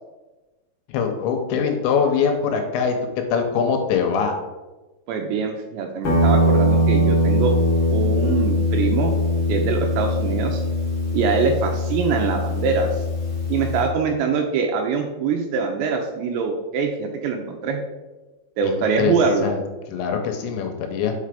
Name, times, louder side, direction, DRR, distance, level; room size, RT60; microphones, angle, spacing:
voice 1, 0.9-4.4 18.6-19.2 19.4-21.1, left 6 dB, 80° left, 4 dB, 2.9 m, -23 dB
voice 2, 5.1-7.6 7.9-9.2 9.5-10.6 11.1-12.9 13.5-17.8 18.6-19.5, right 5 dB, 80° right, 3 dB, 2.6 m, -23 dB
Guitar, 6.0-13.9, left 1 dB, 60° left, 1.3 m, -21 dB
5.8 x 5.4 x 4.9 m, 1.2 s
omnidirectional pair, 5.5 m